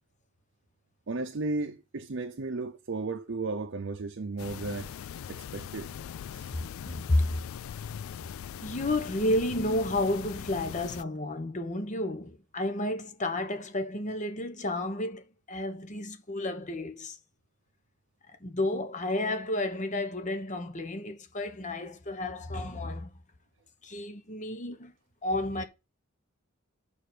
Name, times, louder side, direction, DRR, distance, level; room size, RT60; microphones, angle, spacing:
voice 1, 1.1-4.9 5.3-5.9 6.3-6.5, right 3 dB, 60° right, 0.7 m, -34 dB
sound 1, 4.4-11.0, left 8 dB, 80° left, 0.3 m, -41 dB
voice 2, 6.9-7.3 8.6-17.2 18.4-23.1 23.8-24.9 25.2-25.6, left 1 dB, 35° left, 1.1 m, -31 dB
5.4 x 5.1 x 6.1 m
head